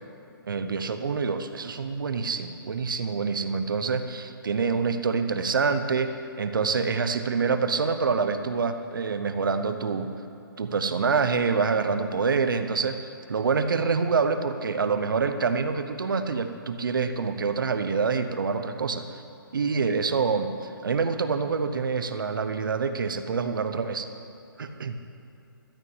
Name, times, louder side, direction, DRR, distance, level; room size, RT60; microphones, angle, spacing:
voice 1, 0.5-10.1 10.6-13.0 13.3-19.2 19.5-24.1 24.6-25.0, right 5 dB, 60° right, 9 dB, 0.8 m, -26 dB
13.5 x 5.9 x 8.8 m, 2.8 s
hypercardioid pair, 175°, 12 cm